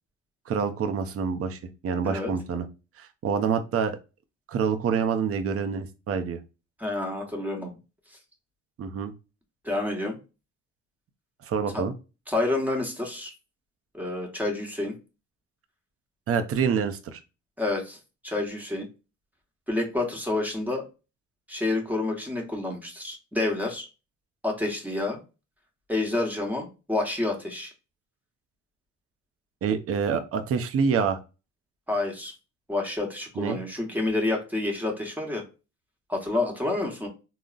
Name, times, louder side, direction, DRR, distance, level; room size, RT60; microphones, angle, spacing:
voice 1, 0.5-2.6 3.0-4.0 4.5-6.4 8.8-9.1 11.4-11.9 16.3-17.2 29.6-31.2 33.4-33.6, right 6 dB, 50° right, 8 dB, 0.5 m, -27 dB
voice 2, 6.8-7.7 9.6-10.2 11.7-11.8 12.3-13.3 13.9-14.9 17.6-18.0 18.2-18.9 19.7-20.8 21.5-23.9 24.4-25.2 25.9-27.7 31.9-32.3 32.7-35.4 36.1-37.1, left 2 dB, 5° right, 1 dB, 1.0 m, -28 dB
3.7 x 2.0 x 2.3 m, 0.30 s
cardioid pair, 90°, 30 cm